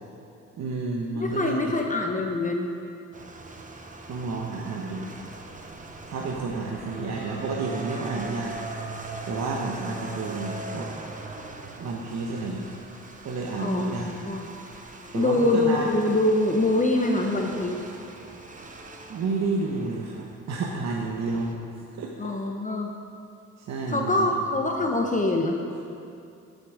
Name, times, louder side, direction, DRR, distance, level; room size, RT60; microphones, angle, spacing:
voice 1, 0.6-1.7 4.1-5.1 6.1-8.6 9.3-10.9 11.8-12.7 13.2-14.1 15.1-16.0 19.1-21.6 21.9-22.3 23.6-24.3 24.8-24.9, right 3 dB, 60° right, -1 dB, 1.2 m, -30 dB
voice 2, 1.2-2.7 13.6-14.5 15.1-17.8 22.2-22.9 23.9-25.6, left 2 dB, 25° left, 2 dB, 0.9 m, -24 dB
sound 1, 3.1-21.5, right 2 dB, 25° right, 1.1 m, -41 dB
13.0 x 7.9 x 4.9 m, 2.6 s
cardioid pair, 90°, 30 cm